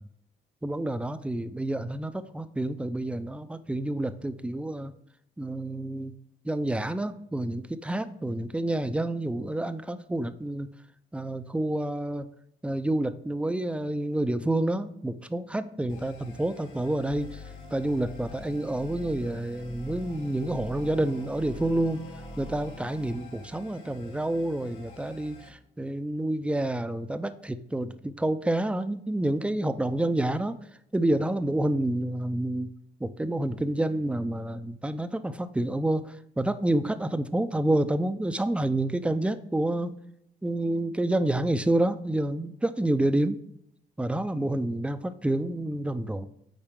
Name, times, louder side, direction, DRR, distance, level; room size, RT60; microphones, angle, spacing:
voice 1, 0.6-4.9 5.4-6.2 6.4-10.7 11.1-12.3 12.6-17.4 17.7-22.0 22.4-30.6 30.9-32.7 33.0-39.9 40.4-43.4 44.0-46.3, right 1 dB, 5° right, 11 dB, 0.5 m, -28 dB
sound 1, 15.9-25.5, equal, 90° left, 2.2 m, -44 dB
8.9 x 4.3 x 3.7 m, 0.75 s
cardioid pair, 90°, 20 cm